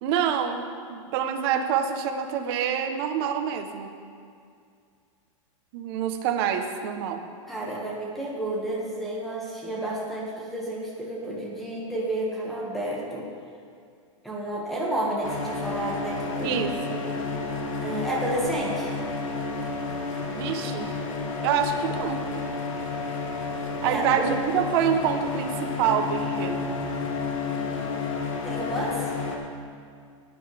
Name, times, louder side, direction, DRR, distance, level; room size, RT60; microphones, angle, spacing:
voice 1, 0.0-3.9 5.7-7.2 16.4-17.0 20.2-20.9 21.4-22.4 23.8-26.7, right 8 dB, 50° right, 6 dB, 1.2 m, -27 dB
voice 2, 7.5-13.3 14.2-16.6 16.9-17.0 17.8-18.9 23.8-24.0 27.6-28.1 28.4-29.1, right 1 dB, ahead, -5 dB, 2.0 m, -31 dB
sound 1, 15.2-29.4, left 4 dB, 75° left, 1.9 m, -31 dB
17.0 x 9.8 x 3.6 m, 2.3 s
supercardioid pair, 145°, 17 cm